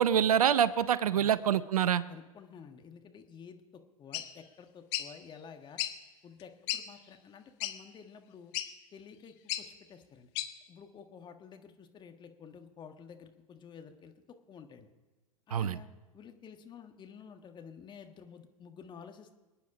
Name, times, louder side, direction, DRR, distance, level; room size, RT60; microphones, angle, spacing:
voice 1, 0.0-2.0 15.5-15.8, right 9 dB, 75° right, 17 dB, 0.6 m, -26 dB
voice 2, 2.1-5.9 6.2-8.5 8.9-10.3 10.7-14.1 14.5-14.9 15.5-15.9 16.1-19.4, left 6 dB, 25° left, 6 dB, 1.6 m, -51 dB
sound 1, 4.1-4.3 4.9-5.1 5.8-5.9 6.4-6.5 6.7-6.8 7.6-7.7 8.5-8.7 9.5-9.6 10.3-10.5, left 14 dB, 50° left, 1.1 m, -33 dB
26.5 x 9.4 x 5.0 m, 1.1 s
figure-of-eight pair, 100°, 19 cm